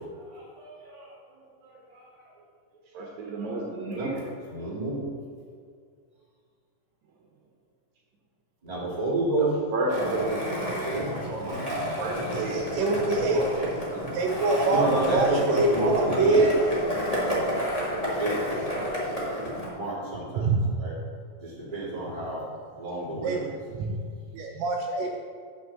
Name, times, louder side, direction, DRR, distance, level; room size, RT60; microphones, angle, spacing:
voice 1, 0.2-2.3 2.9-3.1 3.9-4.1 4.5-5.1 8.6-9.5 10.3-11.7 14.7-16.5 18.2-18.4 19.7-20.5 20.8-20.9 21.4-22.4 22.8-23.5, right 2 dB, 15° right, -7 dB, 1.9 m, -31 dB
voice 2, 2.9-4.3 9.4-10.8 11.1-14.1, right 2 dB, 70° right, -1 dB, 2.0 m, -33 dB
Skateboard, 9.9-19.7, equal, 35° left, 0.5 m, -30 dB
voice 3, 12.5-13.6 14.1-16.5 20.3-20.7 23.2-23.4 23.8-24.0 24.3-25.2, right 3 dB, 85° right, 1 dB, 1.5 m, -25 dB
6.1 x 6.0 x 7.0 m, 2.2 s
omnidirectional pair, 3.9 m